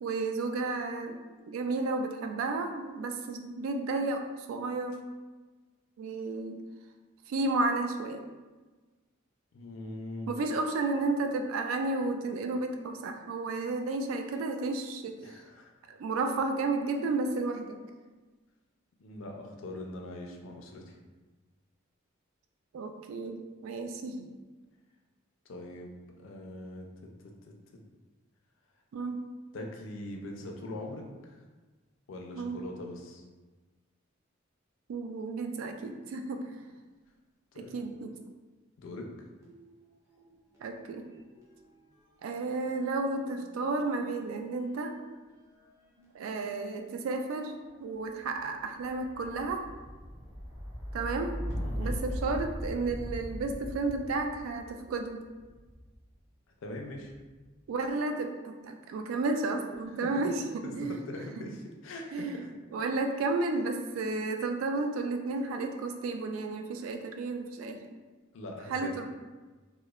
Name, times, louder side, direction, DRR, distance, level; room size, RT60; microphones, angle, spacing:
voice 1, 0.0-4.2 4.5-5.0 6.0-6.6 7.3-8.2 10.3-15.2 15.9-17.8 22.7-24.3 28.9-29.2 32.4-32.6 34.9-36.4 37.6-38.1 40.6-41.0 42.2-44.9 46.1-49.6 50.9-51.4 51.8-55.2 57.7-60.4 60.7-61.0 62.1-62.4 62.7-67.8 68.7-69.0, right 3 dB, 80° right, 5 dB, 0.3 m, -32 dB
voice 2, 9.5-10.3 15.2-15.7 19.0-21.0 25.5-25.9 26.2-27.1 27.5-27.6 29.5-31.4 32.1-33.2 37.5-37.8 38.8-39.1 51.6-52.0 56.6-57.1 60.0-60.2 60.6-62.5 66.8-66.9 68.3-68.9, left 1 dB, 65° left, 2 dB, 0.4 m, -42 dB
sound 1, 39.4-40.7 41.0-56.0 56.8-57.4, equal, 15° right, 0.5 m, -41 dB
2.9 x 2.0 x 2.3 m, 1.3 s
head